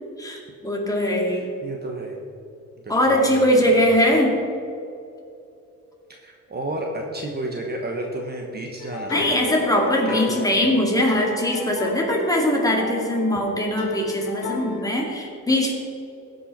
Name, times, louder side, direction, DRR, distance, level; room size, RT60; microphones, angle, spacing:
voice 1, 0.2-1.5 2.9-4.4 9.1-15.7, left 1 dB, 10° left, -1 dB, 2.2 m, -21 dB
voice 2, 1.3-2.2 2.8-3.8 6.2-9.3 10.0-10.5, right 1 dB, 35° right, 1 dB, 1.3 m, -32 dB
sound 1, 8.8-14.9, left 5 dB, 85° left, 1.0 m, -33 dB
15.5 x 5.5 x 4.3 m, 2.6 s
cardioid pair, 90°, 30 cm